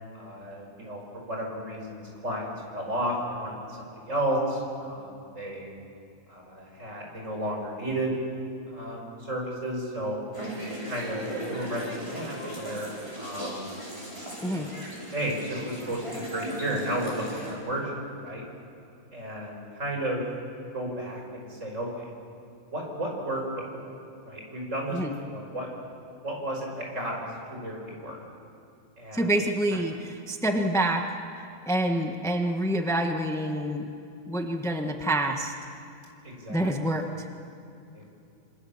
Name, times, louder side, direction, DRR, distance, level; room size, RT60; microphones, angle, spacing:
voice 1, 0.1-5.7 6.3-8.2 8.7-10.2 10.9-12.9 13.2-13.6 14.5-14.8 15.1-17.9 18.2-18.4 19.1-20.3 20.7-22.1 22.7-23.4 23.8-23.9 24.2-25.0 25.2-25.7 26.2-27.3 27.5-28.2 29.0-29.3 36.2-36.7 37.9-38.1, right 1 dB, 60° right, -1 dB, 5.8 m, -33 dB
sound 1, 10.3-17.5, equal, 20° right, 6.1 m, -37 dB
voice 2, 14.4-14.7 24.9-25.2 29.1-31.0 31.7-33.9 34.3-35.5 36.5-37.3, right 1 dB, ahead, 3 dB, 1.3 m, -27 dB
26.5 x 26.0 x 7.3 m, 2.6 s
omnidirectional pair, 1.5 m